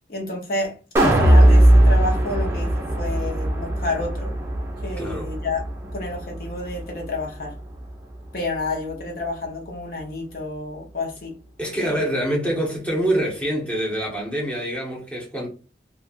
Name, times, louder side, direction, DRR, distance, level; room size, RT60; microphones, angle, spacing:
voice 1, 0.1-0.8 1.0-4.4 4.8-7.5 8.3-11.4 11.7-12.0, left 2 dB, 55° left, 0.9 m, -30 dB
sound 1, 1.0-7.2 7.6-7.7, right 1 dB, 15° right, 0.5 m, -19 dB
voice 2, 5.0-5.3 11.6-15.5, right 1 dB, 10° left, 0.9 m, -25 dB
3.1 x 2.3 x 2.5 m
head